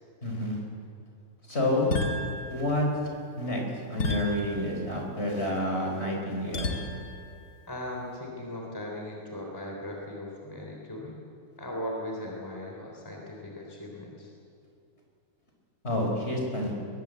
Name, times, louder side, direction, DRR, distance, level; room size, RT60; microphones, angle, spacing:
voice 1, 0.2-0.6 1.5-1.9 2.5-2.9 3.4-3.6 3.9-6.8 15.8-16.7, left 1 dB, 40° left, 0 dB, 5.3 m, -29 dB
sound 1, 1.9-3.2 4.0-5.2 6.5-7.3, left 2 dB, 75° left, 2.3 m, -33 dB
voice 2, 7.7-11.2 11.6-14.3, left 1 dB, 15° left, -1 dB, 3.4 m, -38 dB
21.5 x 21.5 x 8.1 m, 2.4 s
omnidirectional pair, 1.6 m